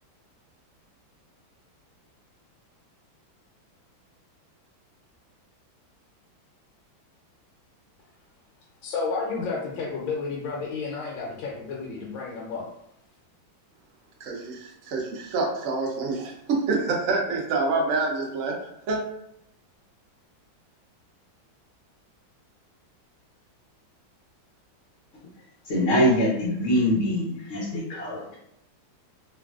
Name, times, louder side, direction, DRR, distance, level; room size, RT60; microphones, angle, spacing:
voice 1, 8.8-12.7, left 4 dB, 90° left, -4 dB, 1.4 m, -31 dB
voice 2, 14.2-18.5 18.9-19.0, right 3 dB, 75° right, -1 dB, 0.7 m, -27 dB
voice 3, 25.6-28.4, equal, 65° left, -5 dB, 0.7 m, -23 dB
3.1 x 2.4 x 2.3 m, 0.79 s
omnidirectional pair, 2.1 m